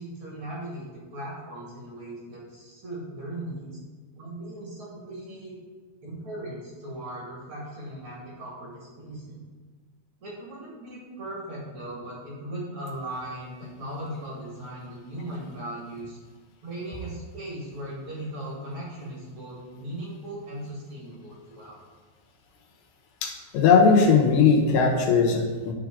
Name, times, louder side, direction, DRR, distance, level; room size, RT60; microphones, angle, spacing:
voice 1, 0.0-3.8 4.2-5.6 6.0-9.5 10.2-16.2 16.6-21.8, right 1 dB, 45° right, -5 dB, 1.8 m, -38 dB
voice 2, 23.2-25.7, left 5 dB, 85° left, 2 dB, 3.2 m, -19 dB
11.0 x 4.8 x 3.8 m, 1.4 s
omnidirectional pair, 4.7 m